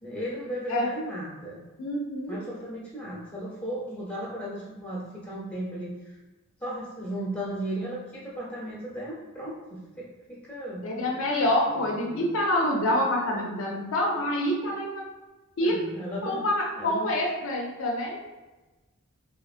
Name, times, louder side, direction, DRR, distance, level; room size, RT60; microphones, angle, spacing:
voice 1, 0.0-1.7 2.3-6.1 6.6-10.8 15.6-16.4 16.8-17.1, right 1 dB, 5° left, -7 dB, 0.7 m, -35 dB
voice 2, 1.8-2.4 10.8-15.0 15.6-15.8 16.2-18.2, left 1 dB, 65° left, -1 dB, 0.4 m, -26 dB
2.8 x 2.5 x 2.4 m, 1.2 s
head